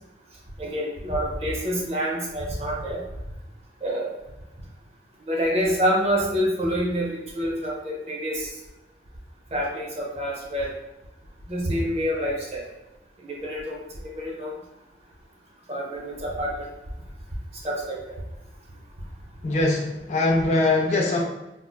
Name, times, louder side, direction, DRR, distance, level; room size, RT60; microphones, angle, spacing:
voice 1, 0.6-3.0 3.8-4.1 5.3-8.5 9.5-10.7 11.5-12.6 13.2-14.6 15.7-16.7 17.6-18.1, equal, 35° right, -1 dB, 0.6 m, -27 dB
voice 2, 19.4-21.2, left 2 dB, 40° left, 0 dB, 0.4 m, -22 dB
4.3 x 2.1 x 2.2 m, 0.99 s
head